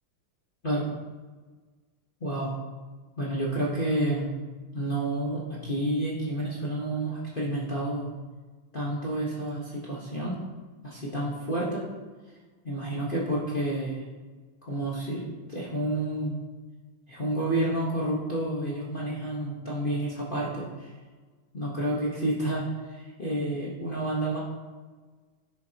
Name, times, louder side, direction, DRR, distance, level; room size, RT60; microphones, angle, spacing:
voice 1, 2.2-2.6 3.2-4.3 4.7-8.1 8.7-10.4 10.8-11.8 12.6-14.0 14.6-16.4 17.1-20.9 21.5-24.4, right 1 dB, 30° left, -7 dB, 1.3 m, -30 dB
10.0 x 8.1 x 2.9 m, 1.3 s
omnidirectional pair, 2.2 m